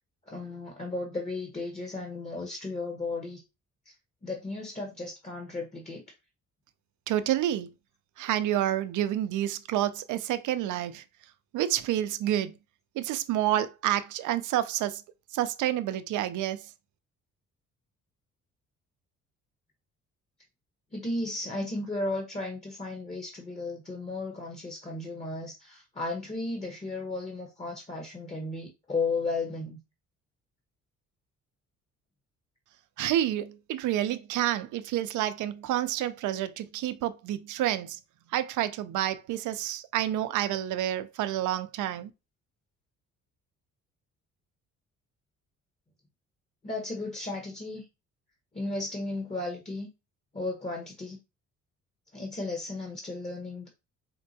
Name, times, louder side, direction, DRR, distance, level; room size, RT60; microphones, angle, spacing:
voice 1, 0.3-3.4 3.9-4.0 4.2-6.0 20.9-29.8 46.6-47.8 48.5-49.9 50.3-51.2 52.1-53.7, left 2 dB, 25° left, 0.9 m, -34 dB
voice 2, 7.1-7.7 8.2-11.0 11.5-12.5 12.9-15.0 15.3-16.7 33.0-38.0 38.3-42.1, right 12 dB, 80° right, 0.5 m, -29 dB
4.4 x 2.2 x 2.7 m
cardioid pair, 90°, 30 cm